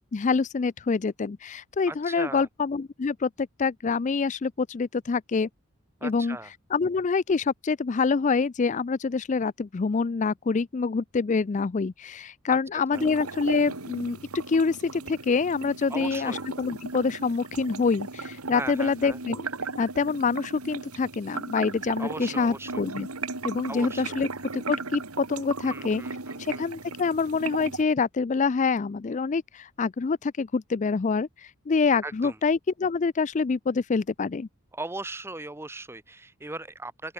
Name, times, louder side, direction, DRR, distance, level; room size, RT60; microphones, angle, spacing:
voice 1, 0.1-5.5 6.0-6.4 6.7-14.2 14.5-19.5 19.8-23.1 23.4-24.3 24.5-26.0 26.5-31.3 31.7-34.5, left 4 dB, 35° left, 0.4 m, -26 dB
voice 2, 1.9-2.5 6.0-6.5 12.5-12.6 12.9-13.0 15.9-16.4 18.5-19.2 22.0-22.8 23.7-24.2 25.6-26.7 32.0-32.4 34.7-37.1, right 2 dB, 10° right, 0.8 m, -38 dB
sound 1, 12.9-27.8, right 3 dB, 90° right, 2.6 m, -37 dB
open air
head